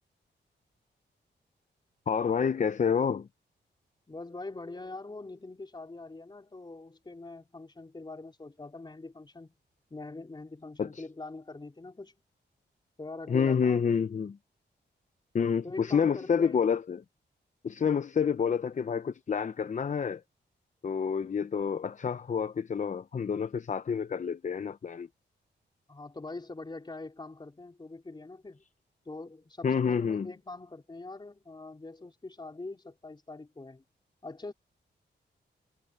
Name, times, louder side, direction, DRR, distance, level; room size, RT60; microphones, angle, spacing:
voice 1, 2.1-3.3 10.8-11.0 13.3-14.4 15.3-17.0 17.6-20.2 20.8-25.1 29.6-30.3, left 6 dB, 40° left, 0.6 m, -28 dB
voice 2, 4.1-9.5 9.9-12.1 13.0-13.9 15.6-16.6 25.9-28.6 29.0-33.8 34.2-34.5, left 2 dB, 25° left, 4.3 m, -43 dB
wide cardioid pair, 110°, 19 cm